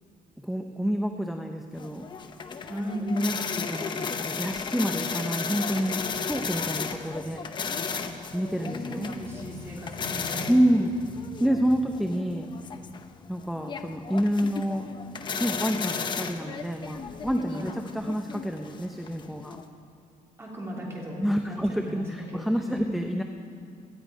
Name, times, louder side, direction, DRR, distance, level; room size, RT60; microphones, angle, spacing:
voice 1, 0.4-2.1 3.1-7.4 8.3-9.1 10.5-11.0 11.4-12.5 13.3-14.9 15.4-19.6 21.2-23.2, equal, ahead, 4 dB, 0.5 m, -28 dB
sound 1, 1.8-19.7, left 5 dB, 35° left, 0.8 m, -35 dB
voice 2, 2.7-3.1 8.9-10.5 17.5-17.8 20.4-22.0 22.3-22.9, equal, 20° right, -3 dB, 3.1 m, -37 dB
18.0 x 13.0 x 5.2 m, 2.3 s
cardioid pair, 160°, 14 cm